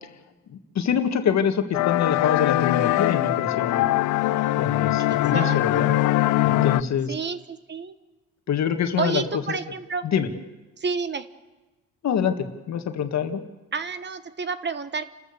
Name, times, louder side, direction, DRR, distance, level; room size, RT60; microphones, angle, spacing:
voice 1, 0.5-3.9 4.5-5.9 6.4-7.1 8.5-9.2 10.1-10.3 12.0-13.4, left 7 dB, 65° left, 7 dB, 1.8 m, -25 dB
sound 1, 1.7-6.8, left 16 dB, 90° left, 0.6 m, -22 dB
voice 2, 5.1-6.0 7.1-8.0 9.0-10.0 10.8-11.3 13.7-15.0, right 5 dB, 35° right, 12 dB, 1.1 m, -30 dB
29.5 x 14.0 x 6.9 m, 1.2 s
cardioid pair, 90°, 30 cm